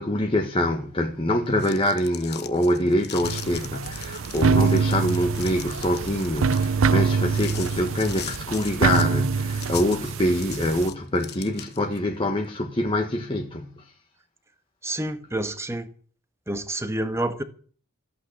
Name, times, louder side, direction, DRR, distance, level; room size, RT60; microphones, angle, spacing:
voice 1, 0.0-13.9, left 1 dB, 25° left, 1.5 m, -25 dB
sound 1, 1.4-12.0, left 11 dB, 50° left, 1.2 m, -40 dB
sound 2, 3.2-10.9, right 5 dB, 65° right, 0.6 m, -25 dB
voice 2, 14.8-15.9 16.5-17.4, right 1 dB, 15° right, 1.4 m, -28 dB
14.5 x 8.7 x 8.4 m
head